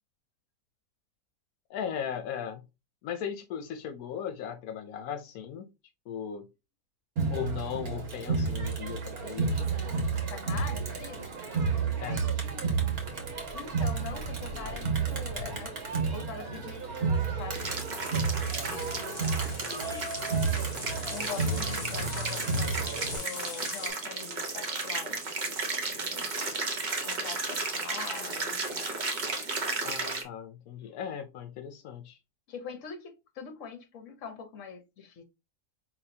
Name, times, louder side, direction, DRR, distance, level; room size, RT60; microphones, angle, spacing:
voice 1, 1.7-2.6 3.0-5.7 6.1-6.5 7.3-9.7 12.0-12.2 20.2-21.7 29.8-32.2, left 8 dB, 85° left, 1.1 m, -38 dB
Crowd, 7.2-23.2, right 4 dB, 85° right, 1.8 m, -31 dB
voice 2, 10.3-11.2 13.5-17.7 18.7-20.0 21.1-25.6 25.9-26.3 27.0-28.8 32.5-35.2, left 6 dB, 60° left, 1.2 m, -43 dB
sound 1, 17.5-30.2, right 3 dB, 35° right, 0.9 m, -34 dB
sound 2, 17.9-23.9, left 4 dB, 35° left, 0.8 m, -44 dB
4.9 x 3.2 x 2.7 m
omnidirectional pair, 1.5 m